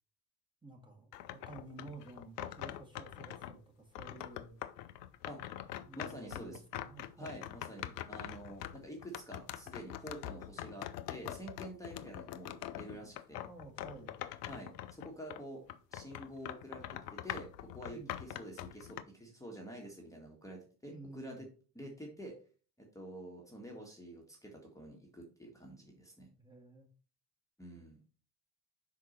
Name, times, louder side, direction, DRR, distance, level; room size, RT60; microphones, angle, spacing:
voice 1, 0.6-4.6 5.8-7.4 13.0-14.1 17.9-18.2 20.9-21.4 26.4-26.9, right 2 dB, 10° right, -1 dB, 1.9 m, -52 dB
sound 1, 1.1-3.6 3.9-15.4 15.7-19.0, left 12 dB, 70° left, 0.6 m, -44 dB
voice 2, 6.0-6.6 7.2-13.4 14.5-15.6 15.9-21.5 21.7-22.3 22.8-26.3 27.6-28.0, right 1 dB, 5° left, 0 dB, 1.7 m, -48 dB
5.9 x 4.8 x 4.3 m, 0.38 s
figure-of-eight pair, 50°, 49 cm